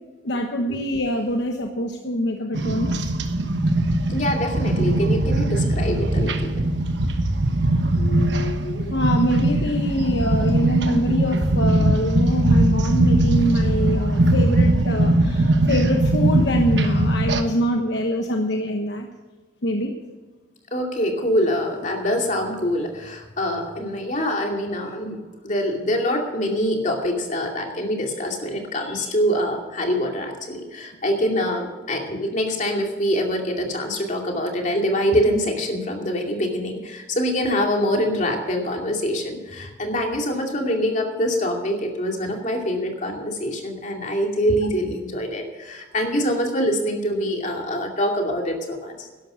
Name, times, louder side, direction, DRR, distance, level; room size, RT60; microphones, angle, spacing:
voice 1, 0.2-3.1 7.0-7.1 8.0-19.1 19.6-20.0, equal, 60° left, 3 dB, 1.1 m, -25 dB
sound 1, 2.5-17.4, right 1 dB, 65° right, 1.2 m, -20 dB
voice 2, 4.1-6.6 20.7-49.3, equal, 40° left, 2 dB, 2.5 m, -24 dB
12.0 x 11.5 x 6.2 m, 1.3 s
head